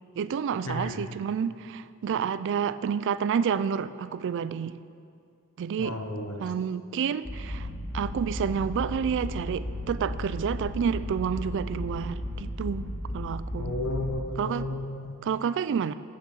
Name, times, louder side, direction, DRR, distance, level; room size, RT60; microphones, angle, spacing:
voice 1, 0.2-4.8 5.6-6.0 6.4-7.7 7.9-13.8 14.4-14.8 15.2-15.9, right 7 dB, 55° right, 15 dB, 0.3 m, -29 dB
voice 2, 0.7-1.0 5.8-6.4 13.6-15.2, left 2 dB, 80° left, 5 dB, 1.0 m, -33 dB
sound 1, 7.2-14.1, left 1 dB, ahead, 2.3 m, -35 dB
8.4 x 6.5 x 7.2 m, 2.3 s
head